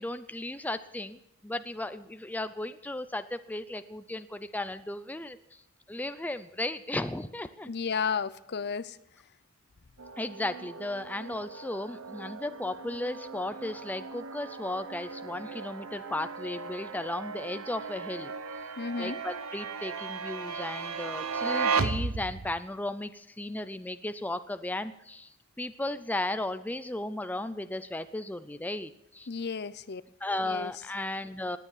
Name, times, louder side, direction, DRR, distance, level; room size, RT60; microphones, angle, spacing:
voice 1, 0.0-5.4 5.9-7.7 10.2-18.3 19.0-25.3 25.6-29.3 30.2-31.6, left 1 dB, 10° left, 11 dB, 0.5 m, -35 dB
voice 2, 7.7-9.0 18.8-19.2 29.3-30.0 30.4-30.7, left 5 dB, 50° left, 17 dB, 0.6 m, -33 dB
sound 1, 10.0-22.6, right 4 dB, 75° right, 1.1 m, -36 dB
19.0 x 9.3 x 7.3 m, 0.81 s
head